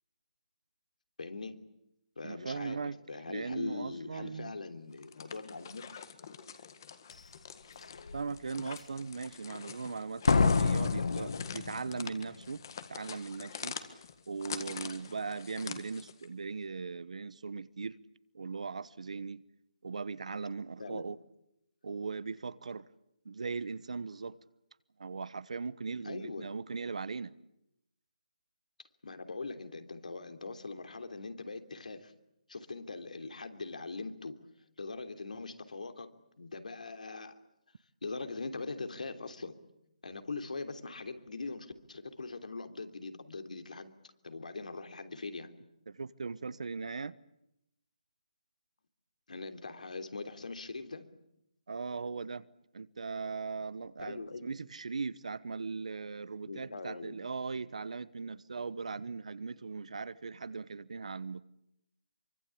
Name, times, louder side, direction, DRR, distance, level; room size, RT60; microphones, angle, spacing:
voice 1, 1.2-1.5 2.2-2.8 3.1-5.8 10.9-11.4 20.8-21.0 26.0-26.5 29.0-32.1 32.5-34.3 34.8-36.1 36.4-37.3 38.0-39.5 40.0-43.9 44.2-45.5 49.3-51.1 54.0-54.5 56.5-57.2, left 3 dB, 70° left, 3.2 m, -41 dB
voice 2, 2.2-3.0 3.3-4.5 8.1-12.6 12.9-13.8 14.3-18.0 18.3-19.4 19.8-21.2 21.8-22.9 23.2-24.4 25.0-27.4 45.9-47.2 51.7-52.5 52.7-61.4, right 4 dB, 60° right, 1.1 m, -39 dB
sound 1, 4.9-16.3, left 7 dB, 30° left, 1.7 m, -46 dB
Slam, 7.1-7.2 7.8-8.2 10.3-12.2 12.4-12.5, left 4 dB, 55° left, 1.3 m, -28 dB
25.5 x 24.0 x 8.6 m
hypercardioid pair, 175°, 4 cm